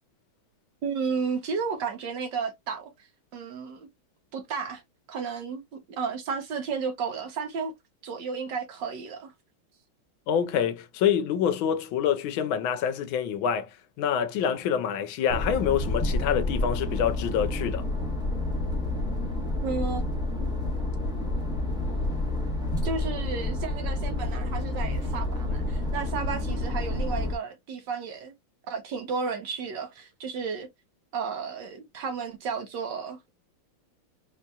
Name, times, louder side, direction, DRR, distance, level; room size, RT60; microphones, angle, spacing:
voice 1, 0.8-3.9 4.3-4.8 5.1-7.7 8.0-9.3 19.6-20.0 20.4-20.5 22.8-28.3 28.7-30.7 31.1-33.2, right 5 dB, 70° right, 1.2 m, -33 dB
voice 2, 10.3-13.7 14.0-17.8, left 8 dB, 75° left, 1.4 m, -26 dB
sound 1, 15.3-27.4, left 2 dB, 5° right, 0.4 m, -29 dB
4.2 x 2.8 x 2.3 m
omnidirectional pair, 2.3 m